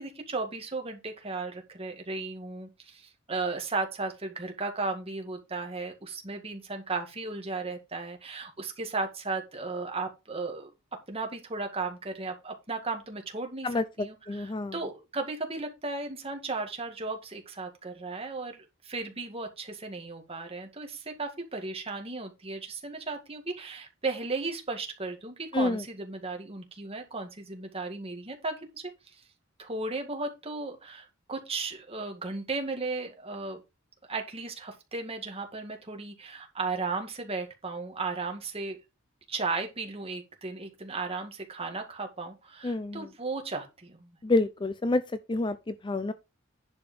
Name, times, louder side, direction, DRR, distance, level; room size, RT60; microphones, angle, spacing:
voice 1, 0.0-10.7 11.1-29.2 29.6-33.6 34.1-38.8 39.3-44.2, right 3 dB, 30° right, 2.0 m, -35 dB
voice 2, 14.3-14.7 25.5-25.8 42.6-43.0 44.2-45.0 45.3-46.1, left 2 dB, 20° left, 0.5 m, -27 dB
10.5 x 4.9 x 5.2 m
head